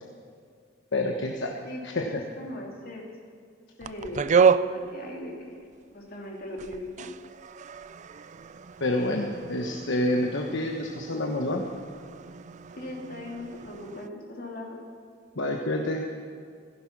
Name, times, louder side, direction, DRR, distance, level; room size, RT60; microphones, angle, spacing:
voice 1, 0.9-2.2 8.8-11.6 15.4-16.1, left 1 dB, 65° left, 2 dB, 1.2 m, -28 dB
voice 2, 1.6-3.0 3.8-5.5 5.9-7.1 12.8-14.8, left 1 dB, 50° left, -1 dB, 3.0 m, -39 dB
sound 1, 3.8-6.0 6.3-14.1, right 6 dB, 40° right, 0.4 m, -30 dB
16.0 x 14.5 x 6.1 m, 2.2 s
head